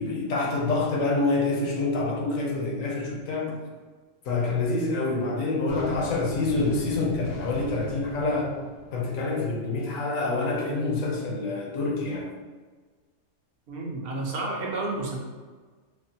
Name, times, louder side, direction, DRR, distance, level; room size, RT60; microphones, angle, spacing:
voice 1, 0.0-3.6 4.2-8.6 8.9-12.3, left 3 dB, 90° left, -1 dB, 1.1 m, -27 dB
sound 1, 5.7-9.6, left 3 dB, 65° left, 0.7 m, -39 dB
voice 2, 13.7-15.2, right 2 dB, 55° right, -2 dB, 0.8 m, -31 dB
4.2 x 2.1 x 2.7 m, 1.4 s
omnidirectional pair, 1.3 m